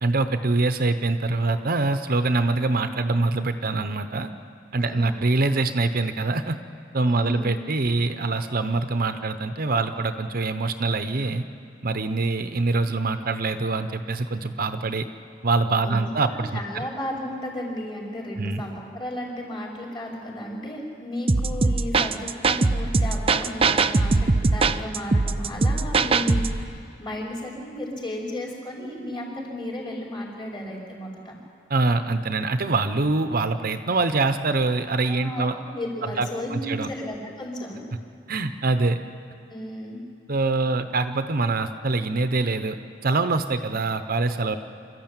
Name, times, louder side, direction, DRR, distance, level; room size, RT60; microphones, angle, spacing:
voice 1, 0.0-4.3 4.7-6.6 6.9-11.4 11.8-15.1 15.4-16.9 18.4-18.6 31.7-35.6 36.0-36.9 38.3-39.0 40.3-42.8 43.0-44.6, right 3 dB, 50° right, 9 dB, 0.9 m, -24 dB
voice 2, 4.8-5.2 7.1-7.5 15.8-16.0 16.3-31.4 35.0-37.8 39.5-40.0, left 1 dB, 25° left, -4 dB, 5.3 m, -34 dB
sound 1, 21.3-26.6, right 3 dB, 30° right, 0.6 m, -21 dB
26.5 x 13.5 x 9.0 m, 2.5 s
head